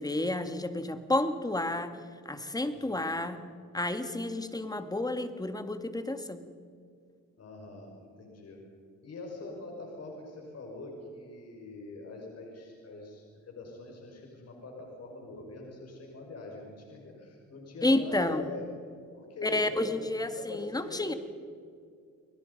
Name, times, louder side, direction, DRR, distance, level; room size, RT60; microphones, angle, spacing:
voice 1, 0.0-1.9 2.3-3.4 3.7-6.4 17.8-18.4 19.4-21.1, left 1 dB, 10° left, 9 dB, 2.1 m, -30 dB
voice 2, 7.4-8.6 9.0-18.7 19.1-21.2, left 2 dB, 55° left, 0 dB, 6.0 m, -43 dB
30.0 x 21.5 x 5.5 m, 2.3 s
cardioid pair, 90°, 30 cm